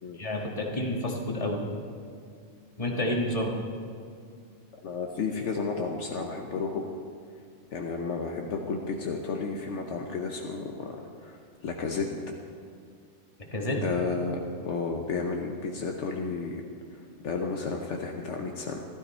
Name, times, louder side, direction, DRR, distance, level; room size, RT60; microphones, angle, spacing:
voice 1, 0.2-1.6 2.8-3.5 13.5-13.8, left 1 dB, 30° left, -1 dB, 1.6 m, -29 dB
voice 2, 4.8-6.9 7.7-11.4 11.6-12.1 13.8-14.4 14.6-16.6 16.9-18.9, left 4 dB, 65° left, 2 dB, 1.2 m, -32 dB
15.0 x 12.5 x 4.3 m, 2.3 s
omnidirectional pair, 1.3 m